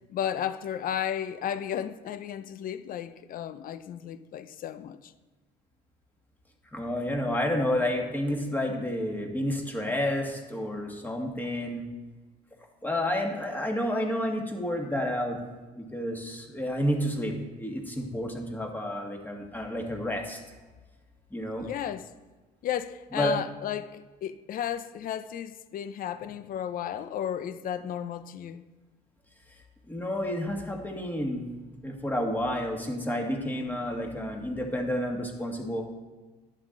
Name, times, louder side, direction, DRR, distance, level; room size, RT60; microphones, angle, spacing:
voice 1, 0.1-5.1 21.6-22.1 22.6-28.6, left 10 dB, 55° left, 0.6 m, -33 dB
voice 2, 6.7-11.8 12.8-15.4 15.8-20.4 21.3-21.7 23.1-23.4 29.9-31.4 31.8-35.8, left 1 dB, 10° left, 1.7 m, -30 dB
10.5 x 8.4 x 3.9 m
cardioid pair, 110°, 17 cm